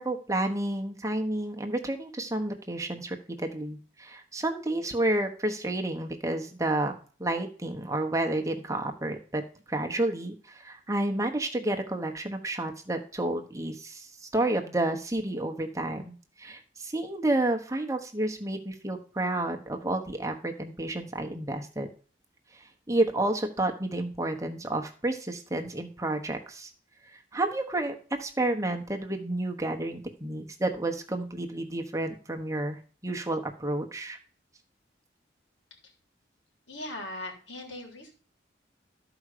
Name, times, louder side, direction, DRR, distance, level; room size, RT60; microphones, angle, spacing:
voice 1, 0.0-6.9 7.2-21.9 22.5-26.7 27.0-34.2, right 1 dB, 15° right, 4 dB, 1.1 m, -30 dB
voice 2, 36.7-38.1, left 1 dB, 85° left, 1 dB, 3.5 m, -39 dB
12.5 x 4.9 x 6.6 m, 0.40 s
head